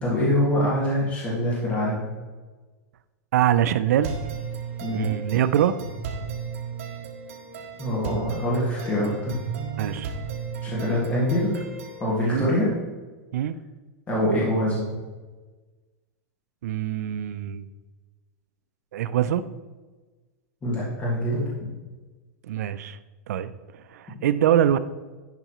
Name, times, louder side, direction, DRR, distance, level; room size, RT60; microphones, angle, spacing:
voice 1, 0.0-2.0 4.8-5.1 7.8-9.3 10.6-11.5 12.0-12.7 14.1-14.9 20.6-21.7, left 1 dB, 15° left, -6 dB, 1.8 m, -24 dB
voice 2, 3.3-4.2 4.9-5.7 9.8-10.1 12.2-12.5 13.3-13.6 16.6-17.7 18.9-19.4 22.5-23.0 23.3-24.8, right 11 dB, 75° right, 12 dB, 0.4 m, -23 dB
sound 1, 4.0-12.0, right 6 dB, 60° right, 1.6 m, -35 dB
10.5 x 5.6 x 3.0 m, 1.3 s
supercardioid pair, 165°, 9 cm